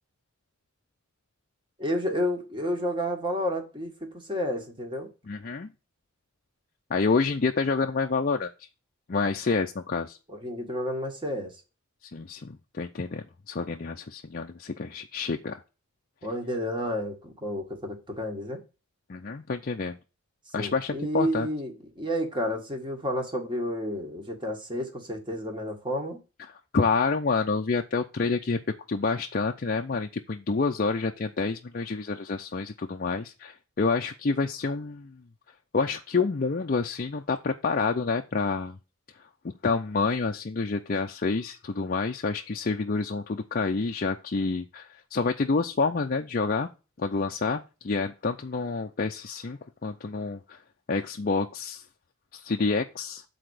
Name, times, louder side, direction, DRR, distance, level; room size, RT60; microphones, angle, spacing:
voice 1, 1.8-5.1 10.3-11.5 16.2-18.6 20.6-26.2, equal, 20° right, 1.8 m, -31 dB
voice 2, 5.3-5.7 6.9-8.5 9.1-10.2 12.0-15.6 19.1-20.0 20.5-21.5 26.7-28.6 28.9-35.2 35.7-38.8 39.4-46.7 47.0-50.6 50.9-51.8 52.3-53.2, left 4 dB, 40° left, 0.5 m, -28 dB
8.0 x 4.3 x 6.4 m
head